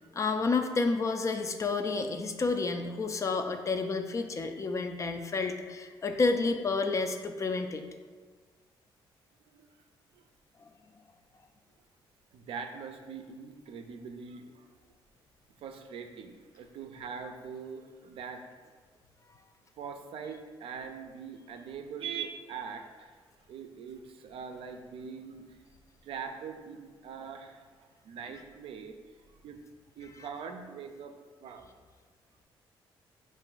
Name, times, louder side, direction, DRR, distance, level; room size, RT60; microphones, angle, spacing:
voice 1, 0.1-7.8, left 3 dB, 35° left, 6 dB, 0.3 m, -30 dB
voice 2, 12.3-14.7 15.6-18.4 19.8-23.2 23.5-25.6 26.0-28.9 29.4-29.6 30.0-31.7, right 6 dB, 75° right, 5 dB, 0.4 m, -42 dB
4.6 x 2.5 x 3.8 m, 1.5 s
cardioid pair, 95°, 10 cm